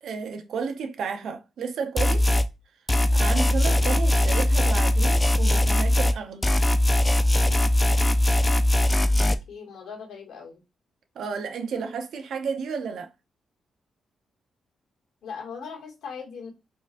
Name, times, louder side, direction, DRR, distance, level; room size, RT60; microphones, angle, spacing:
voice 1, 0.0-2.3 3.1-6.5 11.2-13.1, right 5 dB, 75° right, 0.6 m, -32 dB
sound 1, 2.0-2.5 2.9-6.2 6.4-9.4, left 1 dB, 15° left, 0.3 m, -20 dB
voice 2, 9.2-10.6 15.2-16.5, left 6 dB, 85° left, 1.8 m, -39 dB
4.5 x 2.4 x 2.4 m
cardioid pair, 105°, 0 cm